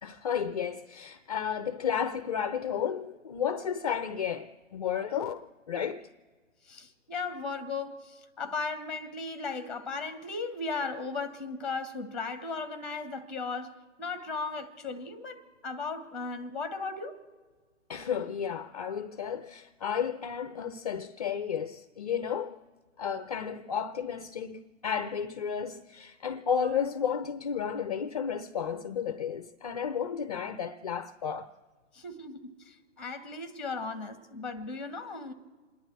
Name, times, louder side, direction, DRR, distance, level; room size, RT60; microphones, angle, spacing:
voice 1, 0.0-6.1 17.9-22.6 23.0-31.5, left 7 dB, 30° left, 0.5 m, -32 dB
voice 2, 6.6-17.1 31.9-35.3, left 4 dB, ahead, 1.2 m, -36 dB
28.5 x 11.0 x 4.5 m
figure-of-eight pair, 145°, 38 cm